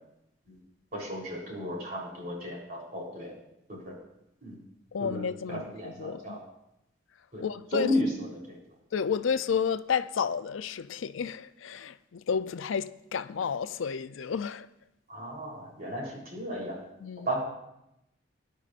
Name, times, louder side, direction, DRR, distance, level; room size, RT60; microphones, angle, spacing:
voice 1, 0.9-3.4 3.7-3.9 4.4-4.6 5.0-5.2 5.5-6.4 7.3-7.4 7.7-8.6 15.1-16.8 17.3-17.5, equal, 45° right, 3.6 m, -34 dB
voice 2, 4.9-6.4 7.4-7.9 8.9-14.7 17.0-17.3, left 6 dB, 75° left, 0.4 m, -31 dB
19.0 x 11.0 x 2.5 m
head